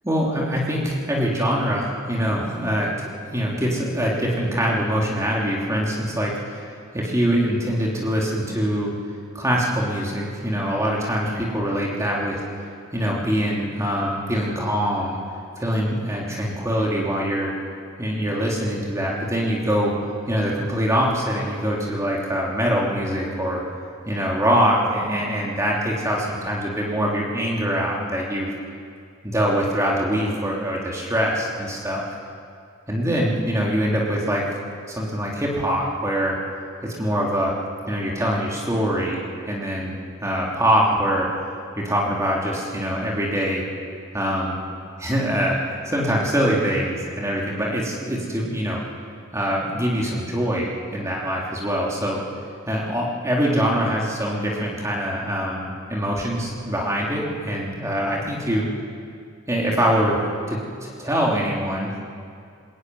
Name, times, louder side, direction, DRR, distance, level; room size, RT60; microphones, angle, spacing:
voice 1, 0.0-6.6 6.9-8.9 9.3-12.4 12.9-15.2 15.6-17.5 18.0-19.9 20.3-23.6 24.1-28.5 29.2-32.0 32.9-34.4 34.9-36.4 36.8-37.5 37.9-39.9 40.2-41.3 41.8-43.6 44.1-44.6 45.0-45.6 45.8-48.8 49.3-52.2 52.7-58.7 59.5-62.0, equal, 15° right, -3 dB, 3.3 m, -23 dB
22.5 x 20.5 x 9.6 m, 2.3 s
head